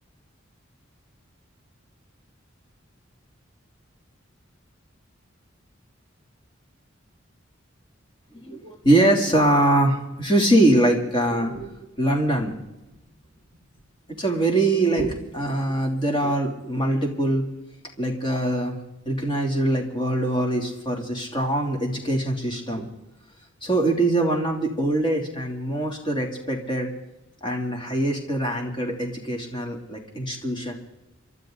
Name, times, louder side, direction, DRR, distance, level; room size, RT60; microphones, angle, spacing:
voice 1, 8.3-12.6 14.2-17.4 18.0-18.8 19.0-22.9 23.6-26.9 27.4-30.7, right 1 dB, 25° left, 1 dB, 3.0 m, -23 dB
29.5 x 12.5 x 3.9 m, 0.97 s
head